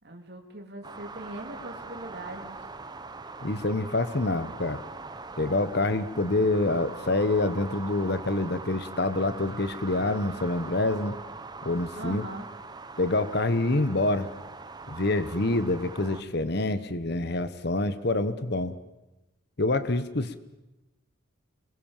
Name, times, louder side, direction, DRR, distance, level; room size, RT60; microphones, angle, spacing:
voice 1, 0.0-2.6 12.0-12.5, right 2 dB, 50° right, 2 dB, 3.0 m, -41 dB
sound 1, 0.8-16.2, right 3 dB, 20° right, 1.1 m, -42 dB
voice 2, 3.4-4.8 5.4-11.1 11.6-12.2 13.0-14.3 14.9-18.7 19.6-20.4, left 2 dB, 50° left, 12 dB, 1.2 m, -26 dB
27.5 x 22.5 x 7.3 m, 1.0 s
head